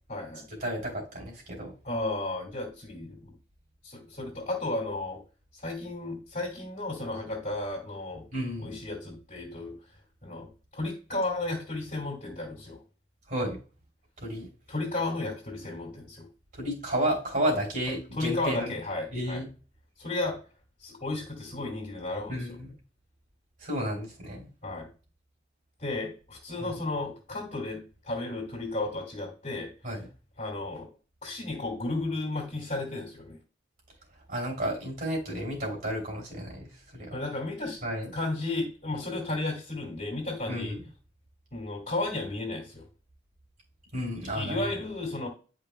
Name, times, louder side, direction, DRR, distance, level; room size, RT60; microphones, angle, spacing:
voice 1, 0.1-0.5 1.8-3.3 3.8-5.2 5.6-8.2 8.6-9.8 10.2-12.8 14.7-16.3 18.2-19.4 20.0-20.4 20.8-22.4 24.6-24.9 25.8-29.7 30.4-30.9 31.2-33.4 37.1-37.8 38.1-40.8 41.5-42.8 44.2-45.3, left 2 dB, 45° left, -3 dB, 2.2 m, -33 dB
voice 2, 0.6-1.7 8.3-8.8 13.3-13.6 14.2-14.5 16.5-18.7 19.1-19.5 22.3-22.7 23.6-24.5 26.6-26.8 29.8-30.1 34.3-37.2 37.8-38.1 40.5-40.8 43.9-44.6, equal, 55° right, -1 dB, 3.3 m, -32 dB
10.5 x 5.2 x 2.2 m, 0.35 s
head